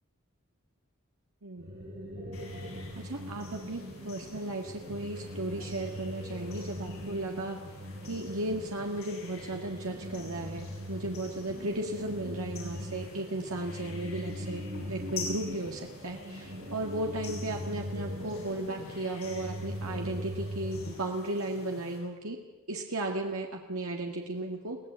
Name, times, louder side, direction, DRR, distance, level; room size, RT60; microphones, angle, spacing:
sound 1, 1.6-20.9, equal, 50° right, 7.1 m, -41 dB
sound 2, 2.3-22.0, left 4 dB, 75° left, 7.3 m, -48 dB
voice 1, 3.0-7.6 8.1-14.6 14.9-22.4 22.7-24.8, right 1 dB, 80° right, 1 dB, 1.9 m, -35 dB
23.0 x 17.0 x 8.0 m, 1.2 s
head